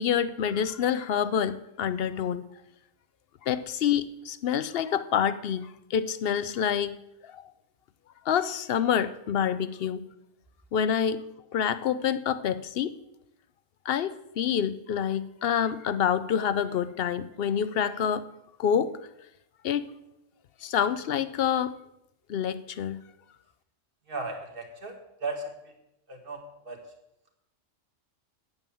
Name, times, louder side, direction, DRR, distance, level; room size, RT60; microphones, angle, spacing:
voice 1, 0.0-2.4 3.4-6.9 7.2-7.5 8.3-10.0 10.7-11.2 11.5-12.9 13.8-18.2 18.6-18.9 19.6-19.9 20.6-21.8 22.3-23.0, left 8 dB, 60° left, 14 dB, 0.7 m, -27 dB
voice 2, 24.1-24.9 25.2-25.5 26.1-26.8, right 3 dB, 50° right, 3 dB, 1.9 m, -35 dB
9.0 x 8.8 x 6.9 m, 0.84 s
omnidirectional pair, 1.2 m